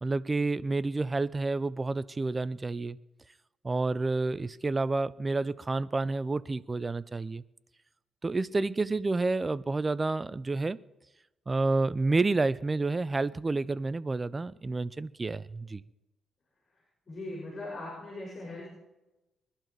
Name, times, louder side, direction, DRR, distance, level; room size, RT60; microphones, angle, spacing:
voice 1, 0.0-3.0 3.6-7.4 8.2-10.8 11.5-15.8, right 3 dB, 25° right, 0.5 m, -29 dB
voice 2, 17.1-18.7, left 2 dB, 35° left, 6.0 m, -39 dB
22.5 x 11.5 x 4.6 m
cardioid pair, 90°, 0 cm